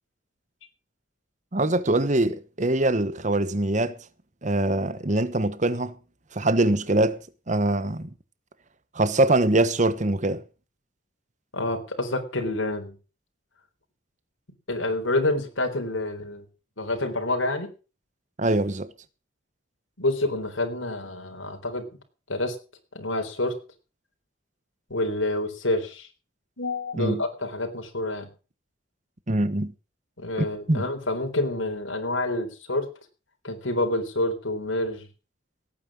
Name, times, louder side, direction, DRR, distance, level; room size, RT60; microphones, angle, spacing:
voice 1, 1.5-4.0 4.4-6.0 6.3-7.2 7.5-8.1 8.9-10.4 18.4-18.9 26.9-27.2 29.3-29.7 30.4-30.9, right 2 dB, 40° right, 1.1 m, -23 dB
voice 2, 11.5-12.9 14.7-16.4 16.8-17.7 20.0-21.9 22.3-22.6 22.9-23.6 24.9-26.1 26.6-28.3 30.2-32.9 33.4-35.1, left 2 dB, 90° left, 3.9 m, -28 dB
17.5 x 9.3 x 6.2 m
head